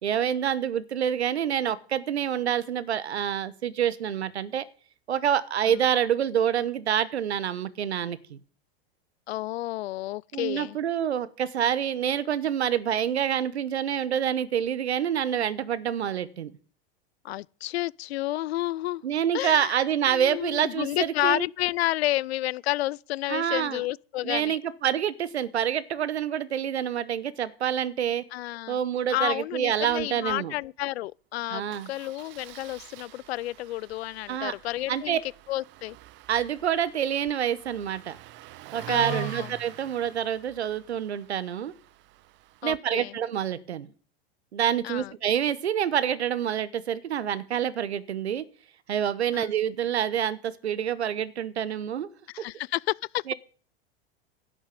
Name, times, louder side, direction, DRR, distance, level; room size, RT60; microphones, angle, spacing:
voice 1, 0.0-4.6 5.1-8.4 10.3-16.5 19.0-21.4 23.3-23.8 24.2-28.2 28.7-30.5 31.5-31.9 34.3-34.5 34.9-35.2 36.3-38.2 38.7-41.7 42.6-43.9 44.5-48.5 48.9-52.1 53.3-53.4, right 9 dB, 90° right, 1.1 m, -27 dB
voice 2, 9.3-10.8 17.2-19.0 19.3-19.7 20.1-24.6 28.3-31.6 31.9-35.2 35.5-36.0 38.9-39.5 42.6-43.2 44.8-45.1 49.3-49.5 52.3-53.2, left 16 dB, 75° left, 0.5 m, -31 dB
Engine starting, 29.8-30.0 30.3-30.4 30.6-30.8 31.7-42.8, right 18 dB, 35° right, 0.6 m, -44 dB
11.5 x 6.3 x 8.3 m
hypercardioid pair, 110°, 32 cm